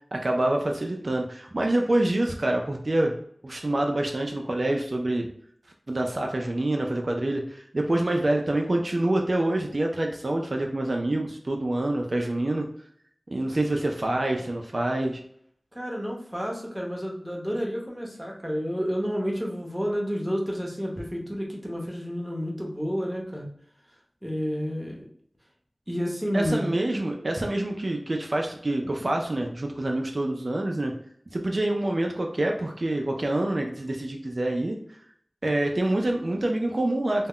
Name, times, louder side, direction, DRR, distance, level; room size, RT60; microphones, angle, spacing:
voice 1, 0.1-3.2 3.4-5.3 5.9-12.7 13.3-15.2 26.3-30.9 31.3-34.8 35.4-37.3, right 1 dB, 60° right, 2 dB, 0.3 m, -26 dB
voice 2, 15.7-23.5 24.2-25.0 25.9-26.8, equal, 10° right, -2 dB, 0.8 m, -30 dB
2.1 x 2.0 x 3.6 m, 0.66 s
wide cardioid pair, 45°, 0 cm